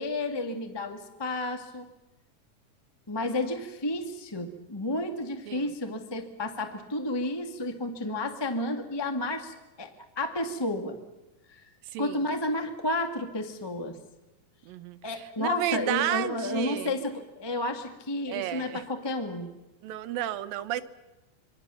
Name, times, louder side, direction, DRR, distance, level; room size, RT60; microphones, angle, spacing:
voice 1, 0.0-1.9 3.1-9.9 10.2-11.0 11.5-11.6 12.0-14.0 15.0-19.5, left 1 dB, 15° left, 6 dB, 1.0 m, -31 dB
voice 2, 11.9-12.2 14.7-16.9 18.3-18.8 19.8-20.8, right 12 dB, 85° right, 10 dB, 2.8 m, -32 dB
26.5 x 24.0 x 7.0 m, 1.0 s
omnidirectional pair, 3.9 m